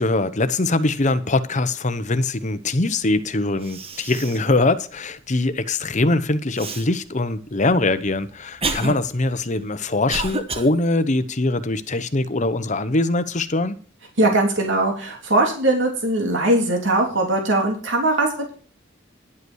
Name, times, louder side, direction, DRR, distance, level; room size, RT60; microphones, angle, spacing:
voice 1, 0.0-13.8, left 2 dB, 40° left, 0.9 m, -22 dB
Cough, 3.2-3.3 3.6-4.5 5.0-5.1 6.6-6.8 7.6-10.7, right 3 dB, 30° right, 1.2 m, -30 dB
voice 2, 14.2-18.5, right 2 dB, 65° right, 3.3 m, -20 dB
11.0 x 8.2 x 6.3 m
head